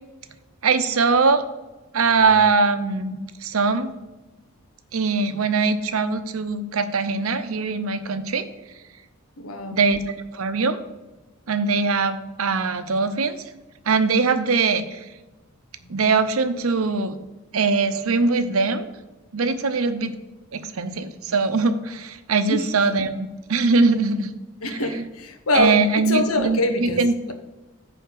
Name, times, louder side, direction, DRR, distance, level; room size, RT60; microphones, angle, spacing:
voice 1, 0.6-1.4 1.9-3.9 4.9-8.5 9.7-10.0 10.3-10.8 11.5-13.4 13.9-15.0 15.9-17.2 17.5-18.9 19.3-20.1 20.5-24.3 24.7-24.8 25.5-27.3, right 4 dB, 80° right, 10 dB, 0.7 m, -21 dB
voice 2, 9.4-9.8 22.5-22.7 24.6-27.0, left 2 dB, 90° left, 6 dB, 1.1 m, -24 dB
9.2 x 3.6 x 6.6 m, 1.1 s
head